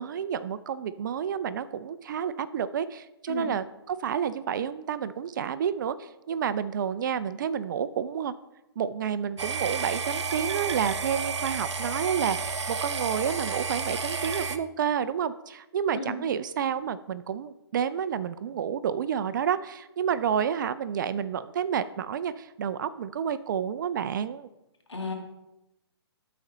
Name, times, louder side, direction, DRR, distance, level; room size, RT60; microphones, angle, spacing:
voice 1, 0.0-8.3 8.8-24.5, right 8 dB, 45° right, 14 dB, 0.4 m, -30 dB
voice 2, 3.3-3.5 15.9-16.1 24.9-25.1, left 3 dB, 90° left, 2 dB, 2.1 m, -33 dB
sound 1, 9.4-14.6, right 5 dB, 80° right, 0.7 m, -31 dB
12.5 x 4.2 x 3.9 m, 0.92 s
hypercardioid pair, 140°, 14 cm